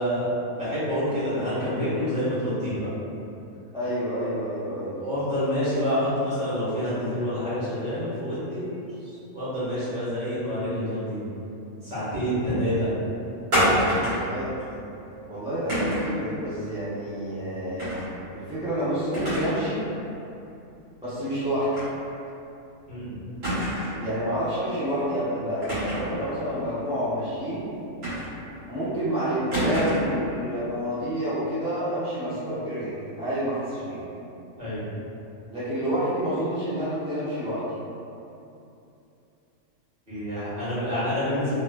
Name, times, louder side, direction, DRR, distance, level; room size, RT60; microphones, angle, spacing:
voice 1, 0.0-2.9 5.0-8.7 9.0-11.3 11.8-12.9 13.6-13.8 22.9-23.2 34.6-34.8 40.1-41.5, equal, 35° right, -13 dB, 1.4 m, -27 dB
voice 2, 3.7-4.9 14.0-14.5 15.3-17.9 18.3-19.8 21.0-21.8 24.0-27.7 28.7-34.0 35.5-37.6, equal, 5° right, -14 dB, 0.7 m, -28 dB
sound 1, 13.5-14.3 15.7-16.2 17.8-18.1 18.5-18.6 19.1-19.7 20.0-20.1 21.7-21.9 22.3-22.4 23.4-24.0 25.6-26.2 28.0-28.6 29.5-30.2, equal, 65° right, 1.7 m, -26 dB
3.3 x 3.0 x 2.2 m, 2.8 s
omnidirectional pair, 1.5 m